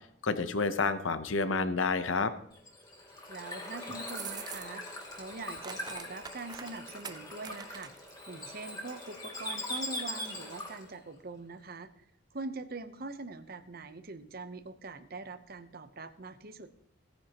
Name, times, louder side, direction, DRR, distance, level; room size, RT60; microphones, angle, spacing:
voice 1, 0.2-2.3, left 4 dB, 75° left, 11 dB, 0.8 m, -29 dB
Bird / Water, 2.5-10.9, left 1 dB, 20° left, 2.3 m, -41 dB
voice 2, 3.3-12.1 12.3-16.7, right 3 dB, 45° right, 11 dB, 0.8 m, -43 dB
sound 1, 4.0-4.9 5.2-8.1, right 7 dB, 20° right, 0.3 m, -44 dB
17.0 x 9.8 x 3.0 m, 0.72 s
head